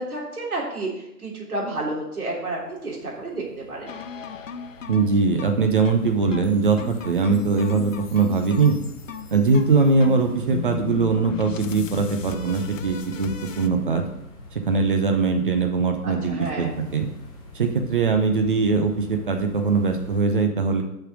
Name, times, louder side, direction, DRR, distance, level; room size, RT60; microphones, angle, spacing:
voice 1, 0.0-3.9 16.0-16.7, right 2 dB, 70° right, -3 dB, 3.4 m, -31 dB
sound 1, 2.2-20.2, left 1 dB, 25° left, 1.2 m, -44 dB
sound 2, 3.9-13.7, left 7 dB, 55° left, 0.7 m, -36 dB
voice 2, 4.9-8.8 9.3-13.3 13.6-14.1 14.5-17.1 17.5-20.8, right 4 dB, 35° right, 4 dB, 0.8 m, -21 dB
7.0 x 5.8 x 6.2 m, 0.83 s
figure-of-eight pair, 150°, 46 cm